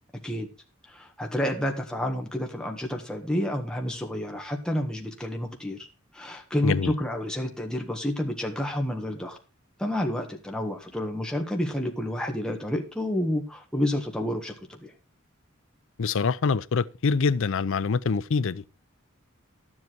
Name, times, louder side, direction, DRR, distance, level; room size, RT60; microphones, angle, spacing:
voice 1, 0.9-5.8 6.1-9.4 9.8-14.9, left 1 dB, 5° left, 1.5 m, -29 dB
voice 2, 6.6-6.9 16.0-18.6, left 5 dB, 65° left, 0.5 m, -25 dB
12.0 x 7.7 x 4.6 m
head